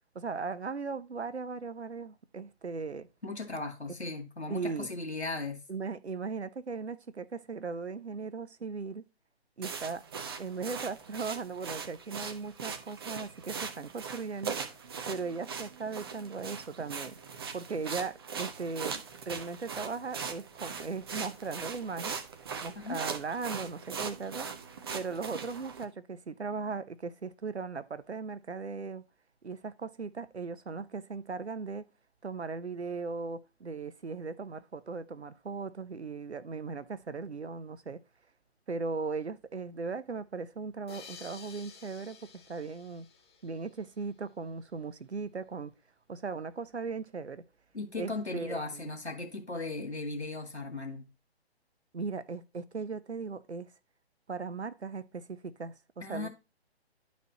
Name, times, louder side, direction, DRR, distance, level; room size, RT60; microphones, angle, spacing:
voice 1, 0.1-3.1 4.5-4.9 5.7-9.0 9.6-10.0 10.4-14.6 15.1-17.2 17.5-22.2 22.6-24.5 24.9-29.0 29.4-31.9 32.2-38.0 38.7-43.1 43.4-45.7 46.1-47.4 48.0-48.9 51.9-53.7 54.3-56.3, right 4 dB, 85° right, 0.7 m, -38 dB
voice 2, 3.2-5.6 22.8-23.0 47.7-51.1 56.0-56.3, left 3 dB, 85° left, 2.2 m, -37 dB
sound 1, 9.6-25.8, right 6 dB, 25° right, 0.6 m, -40 dB
sound 2, 40.9-44.2, left 6 dB, 25° left, 0.8 m, -52 dB
11.0 x 4.2 x 2.9 m
figure-of-eight pair, 135°, 32 cm